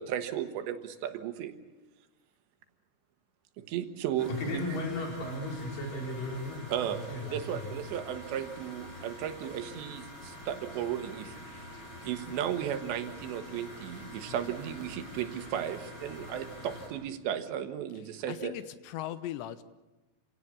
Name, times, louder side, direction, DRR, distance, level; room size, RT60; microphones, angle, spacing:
voice 1, 0.0-1.6 3.6-4.6 6.7-11.4 12.0-18.5, right 10 dB, 85° right, 8 dB, 3.6 m, -35 dB
sound 1, 4.2-16.9, left 1 dB, 25° left, 7.8 m, -46 dB
voice 2, 4.4-7.7, left 1 dB, 50° left, 0 dB, 6.0 m, -36 dB
voice 3, 18.3-19.6, left 13 dB, 85° left, 13 dB, 3.2 m, -39 dB
27.5 x 17.5 x 8.5 m, 1.1 s
omnidirectional pair, 5.1 m